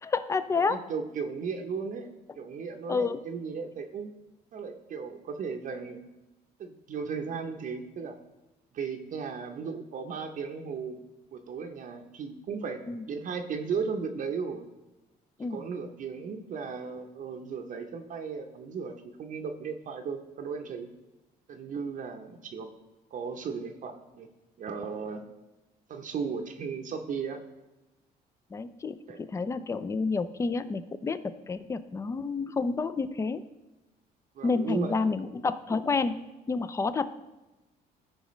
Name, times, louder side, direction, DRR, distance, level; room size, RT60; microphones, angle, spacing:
voice 1, 0.0-0.8 2.9-3.2 12.9-13.0 15.4-15.6 28.5-29.0 29.3-31.2 31.5-33.4 34.4-36.2 36.5-37.1, left 4 dB, 15° left, 13 dB, 0.4 m, -29 dB
voice 2, 0.5-2.1 2.4-4.1 4.5-6.0 6.6-8.2 8.7-11.0 11.3-12.8 13.1-14.7 15.5-18.9 19.2-20.9 21.5-22.7 23.1-24.3 24.6-25.2 25.9-27.4 29.1-29.2 34.4-35.0, right 5 dB, 50° right, 4 dB, 0.8 m, -36 dB
14.0 x 5.0 x 3.1 m, 1.0 s
cardioid pair, 110°, 17 cm